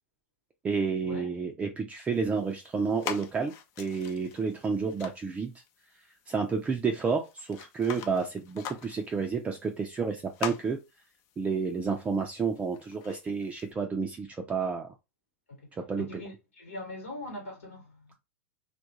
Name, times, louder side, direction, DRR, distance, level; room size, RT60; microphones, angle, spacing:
voice 1, 0.6-5.5 6.3-10.8 11.4-14.9 15.8-16.1, right 5 dB, 20° right, 0.4 m, -30 dB
sound 1, 2.1-13.7, left 8 dB, 45° left, 0.5 m, -44 dB
voice 2, 16.0-18.1, left 2 dB, 90° left, 1.3 m, -41 dB
2.3 x 2.1 x 2.8 m
hypercardioid pair, 100°, 7 cm